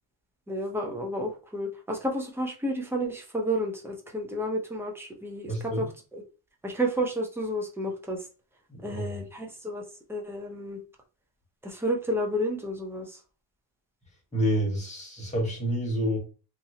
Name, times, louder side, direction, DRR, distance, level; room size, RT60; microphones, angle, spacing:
voice 1, 0.5-5.9 6.1-6.2 6.6-8.2 8.8-9.8 10.1-10.8 11.6-13.2, equal, 5° right, 0.6 m, -31 dB
voice 2, 5.5-5.8 8.7-9.2 14.3-16.2, equal, 15° left, 1.4 m, -28 dB
3.0 x 2.7 x 2.7 m
cardioid pair, 120°, 47 cm